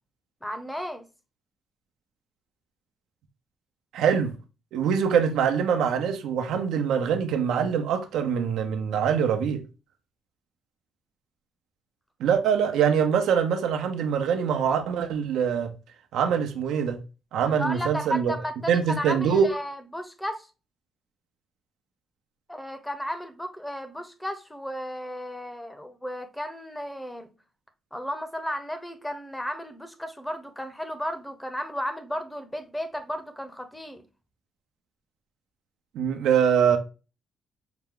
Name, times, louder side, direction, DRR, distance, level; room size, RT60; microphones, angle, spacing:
voice 1, 0.4-1.0 17.5-20.5 22.5-27.3 27.9-34.0, equal, 5° left, 0.9 m, -34 dB
voice 2, 3.9-4.3 4.7-9.6 12.2-15.7 16.1-17.0 17.3-18.3 18.7-19.5 35.9-36.8, right 7 dB, 80° right, 0.7 m, -24 dB
5.8 x 2.2 x 3.7 m
cardioid pair, 90°, 0 cm